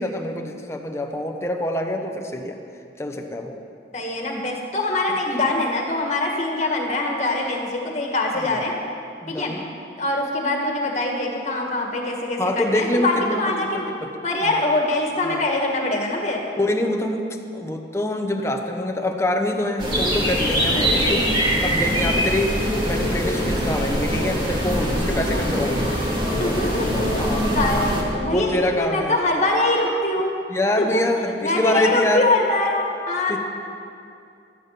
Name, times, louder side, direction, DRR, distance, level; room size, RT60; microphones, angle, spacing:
voice 1, 0.0-2.6 3.0-3.6 8.4-8.6 9.2-9.6 12.4-13.7 14.0-14.1 14.4-14.5 15.2-15.4 16.6-21.3 21.6-26.0 27.2-27.5 27.9-29.1 30.5-32.3 33.3-33.4, left 1 dB, 15° left, 3 dB, 0.9 m, -25 dB
voice 2, 3.9-8.7 9.3-9.5 10.0-13.9 14.2-16.5 20.7-21.3 25.3-25.7 26.4-27.1 27.6-30.3 30.8-31.0 31.4-33.4, left 2 dB, 40° left, 1 dB, 1.9 m, -23 dB
sound 1, 19.8-28.0, equal, 25° right, 2.1 m, -22 dB
13.5 x 12.0 x 5.9 m, 2.5 s
head